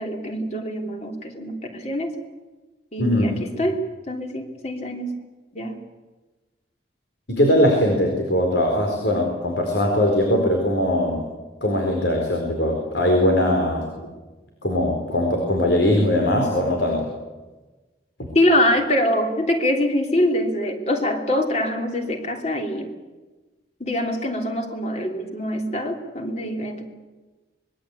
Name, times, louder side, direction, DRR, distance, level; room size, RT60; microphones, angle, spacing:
voice 1, 0.0-2.1 2.9-5.1 5.5-5.8 18.3-22.9 23.8-26.8, left 1 dB, 35° left, 3 dB, 3.3 m, -24 dB
voice 2, 3.0-3.4 7.3-11.2 11.6-13.9 14.6-17.1, left 1 dB, 85° left, 1 dB, 4.5 m, -20 dB
25.0 x 21.5 x 8.5 m, 1.2 s
head